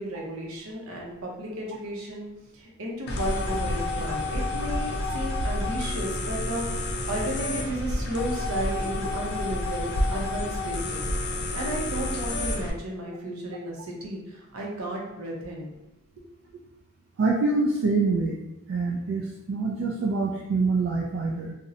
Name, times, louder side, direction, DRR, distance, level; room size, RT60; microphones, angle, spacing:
voice 1, 0.0-2.3 2.5-11.1 11.5-15.7, right 1 dB, 85° right, -2 dB, 0.7 m, -33 dB
sound 1, 3.1-12.7, left 2 dB, 50° left, 0.4 m, -29 dB
sound 2, 4.0-11.1, equal, 5° right, 0.7 m, -40 dB
voice 2, 17.2-18.4 18.7-21.5, right 3 dB, 65° right, -3 dB, 0.3 m, -25 dB
2.6 x 2.0 x 2.6 m, 0.92 s
head